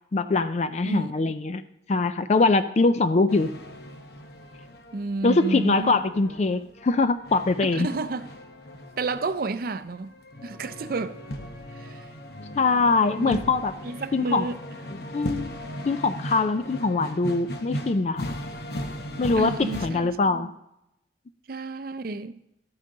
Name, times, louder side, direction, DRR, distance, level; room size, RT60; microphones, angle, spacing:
voice 1, 0.1-1.6 1.9-3.5 5.2-7.9 12.6-13.7 14.1-14.5 15.1-15.5 15.9-18.3 19.2-20.5, left 3 dB, 40° left, 0.4 m, -23 dB
voice 2, 0.8-1.3 4.9-5.9 7.7-8.3 9.0-10.1 10.4-11.2 11.7-12.1 13.2-13.5 13.8-14.6 19.4-20.5 21.5-22.4, right 3 dB, 55° right, 0.5 m, -31 dB
sound 1, 3.3-19.9, left 1 dB, 60° left, 0.9 m, -38 dB
13.0 x 9.0 x 3.8 m
head